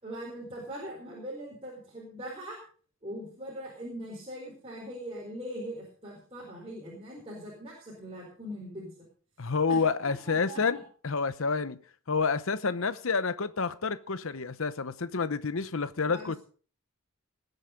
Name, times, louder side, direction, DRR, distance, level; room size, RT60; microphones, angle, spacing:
voice 1, 0.0-2.6 3.0-9.0 9.7-9.8 10.2-10.8 16.0-16.4, equal, 25° right, 4.5 m, -41 dB
voice 2, 9.4-11.8 12.1-16.4, left 4 dB, 65° left, 0.8 m, -29 dB
20.0 x 8.1 x 5.2 m
head